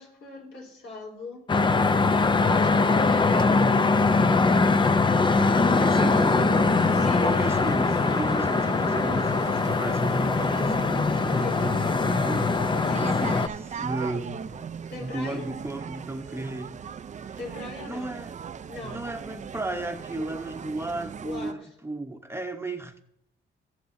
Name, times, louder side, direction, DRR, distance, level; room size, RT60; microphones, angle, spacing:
voice 1, 0.0-1.5 6.9-7.3 11.4-11.6 14.9-15.5 17.4-18.1 18.7-19.1 21.2-21.7, left 3 dB, 70° left, -1 dB, 3.8 m, -40 dB
sound 1, 1.5-13.5, left 3 dB, 25° left, 0.6 m, -22 dB
sound 2, 5.3-21.5, right 7 dB, 35° right, 0.5 m, -38 dB
voice 2, 5.8-6.6 7.1-14.7 15.0-16.8 17.2-17.4 17.8-18.3 18.9-23.0, right 2 dB, 10° right, 5 dB, 0.9 m, -35 dB
18.5 x 6.8 x 2.7 m, 0.78 s
cardioid pair, 90°, 20 cm